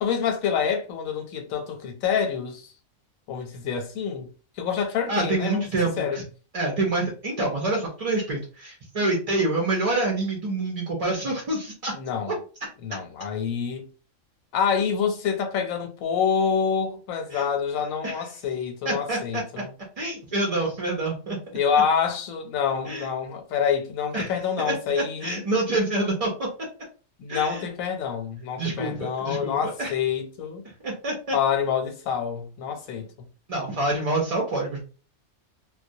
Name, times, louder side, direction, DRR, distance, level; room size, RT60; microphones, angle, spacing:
voice 1, 0.0-2.7 3.3-4.3 4.6-5.6 6.0-6.2 11.9-12.4 12.8-13.9 14.5-19.7 21.5-25.4 27.2-30.6 31.3-33.1, left 7 dB, 90° left, 1.0 m, -27 dB
voice 2, 5.1-6.2 6.5-11.9 12.3-12.4 17.3-17.5 18.0-18.3 18.8-19.4 20.0-21.4 22.9-23.1 24.1-24.3 24.6-26.5 27.3-27.7 28.6-29.9 30.8-31.4 33.5-34.8, right 2 dB, 50° right, 0.4 m, -27 dB
2.2 x 2.1 x 2.6 m
omnidirectional pair, 1.4 m